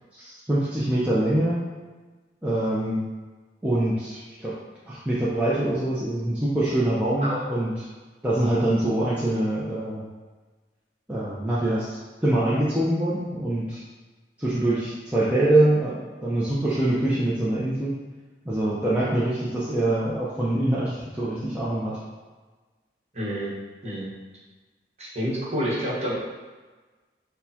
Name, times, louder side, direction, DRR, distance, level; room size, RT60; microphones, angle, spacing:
voice 1, 0.1-1.6 2.4-3.1 3.6-4.5 4.9-7.7 8.2-10.1 11.1-13.8 14.4-17.9 18.5-22.0, right 1 dB, 10° right, -9 dB, 0.5 m, -24 dB
voice 2, 23.1-23.5 23.8-24.1 25.0-26.1, equal, 35° right, -7 dB, 1.1 m, -28 dB
6.3 x 2.2 x 2.8 m, 1.3 s
head